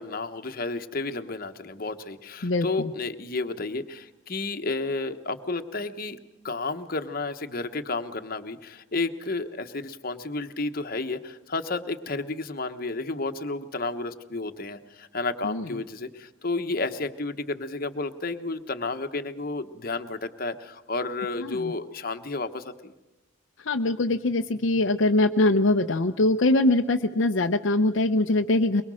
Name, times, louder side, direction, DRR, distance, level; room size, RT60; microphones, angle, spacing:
voice 1, 0.0-6.2 6.4-22.9, left 3 dB, 45° left, 7 dB, 1.2 m, -32 dB
voice 2, 2.4-2.9 15.4-15.6 21.4-21.7 23.7-28.8, left 2 dB, 65° left, 4 dB, 0.7 m, -23 dB
23.0 x 23.0 x 6.3 m, 0.98 s
head